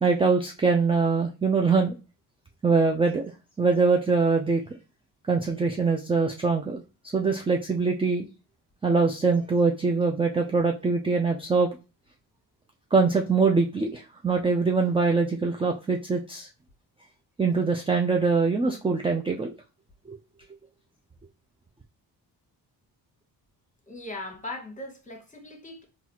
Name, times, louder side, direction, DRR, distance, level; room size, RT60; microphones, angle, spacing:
voice 1, 0.0-2.0 2.6-3.2 3.6-4.6 5.3-6.8 7.1-8.3 8.8-11.7 12.9-16.5 17.4-19.5 20.1-20.2, right 4 dB, 15° right, 2 dB, 0.3 m, -23 dB
voice 2, 23.9-25.8, left 1 dB, 20° left, 4 dB, 1.0 m, -39 dB
4.0 x 2.3 x 2.9 m, 0.30 s
cardioid pair, 90°, 41 cm